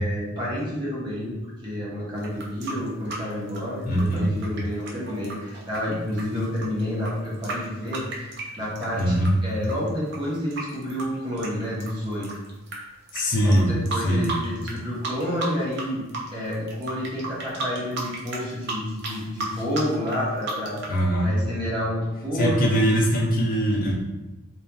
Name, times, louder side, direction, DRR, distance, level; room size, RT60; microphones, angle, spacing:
voice 1, 0.0-1.3 1.6-12.3 13.4-16.0 16.3-20.8 21.2-22.6, equal, 25° right, -7 dB, 0.8 m, -29 dB
sound 1, 2.2-9.3 9.6-12.8 13.1-13.2 13.5-14.8 15.0-15.8 16.1-21.0, right 3 dB, 55° right, 0.5 m, -34 dB
voice 2, 3.9-4.3 9.0-9.4 13.1-14.3 20.9-21.3 22.3-23.9, equal, 45° left, -2 dB, 0.5 m, -22 dB
2.9 x 2.3 x 2.2 m, 1.1 s
head